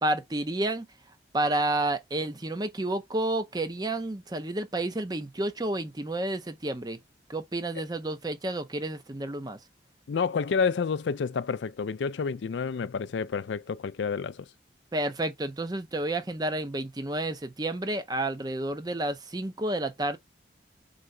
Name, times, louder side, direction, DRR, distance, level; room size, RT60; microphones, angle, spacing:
voice 1, 0.0-0.9 1.3-7.0 7.3-9.6 14.9-20.2, right 1 dB, 20° right, 0.6 m, -30 dB
voice 2, 10.1-14.5, left 5 dB, 80° left, 0.4 m, -29 dB
3.9 x 3.8 x 3.2 m
head